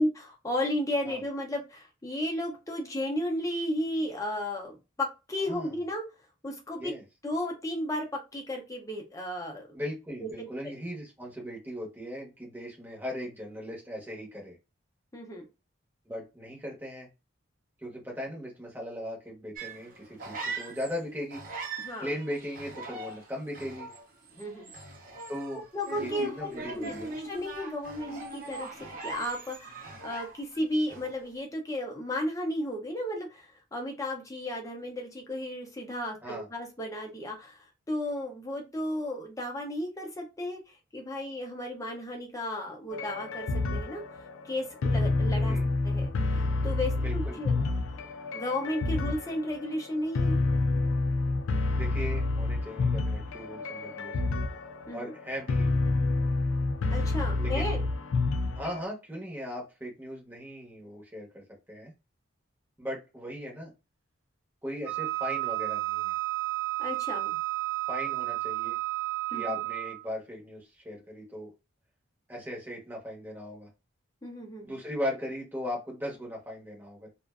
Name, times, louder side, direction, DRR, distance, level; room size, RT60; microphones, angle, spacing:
voice 1, 0.0-6.0 6.4-7.0 7.2-8.1 8.3-9.7 10.2-10.5 15.1-15.5 21.8-22.1 24.4-24.7 25.7-26.9 27.2-44.0 44.4-45.6 45.8-47.7 48.3-50.4 54.9-55.1 56.9-57.8 66.8-67.4 69.3-69.6 74.2-74.8, left 1 dB, 15° left, 0 dB, 0.6 m, -34 dB
voice 2, 9.7-14.6 16.1-17.1 17.8-21.4 22.0-23.9 25.3-25.6 25.9-27.1 36.2-36.5 45.4-45.7 47.0-47.4 51.7-54.3 54.9-55.7 57.4-57.8 58.5-61.9 62.8-63.7 64.6-66.2 67.9-68.8 69.3-71.5 72.3-73.7 74.6-77.2, equal, 10° right, -3 dB, 0.8 m, -38 dB
sound 1, 19.5-21.0 21.3-30.6 30.9-31.3, right 3 dB, 40° right, 0.6 m, -41 dB
sound 2, 42.9-58.8, left 3 dB, 90° left, 0.4 m, -28 dB
Wind instrument woodwind instrument, 64.8-70.1, right 20 dB, 80° right, 0.6 m, -32 dB
2.4 x 2.1 x 2.3 m, 0.27 s
head